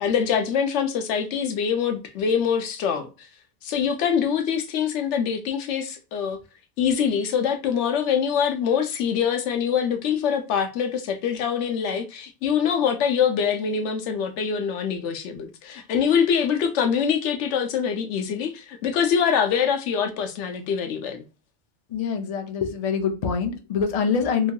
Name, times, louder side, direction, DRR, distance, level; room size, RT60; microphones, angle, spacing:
voice 1, 0.0-3.1 3.6-6.4 6.8-21.2, left 7 dB, 85° left, 0.9 m, -24 dB
voice 2, 21.9-24.5, left 6 dB, 50° left, 0.5 m, -25 dB
2.9 x 2.7 x 2.2 m
omnidirectional pair, 1.2 m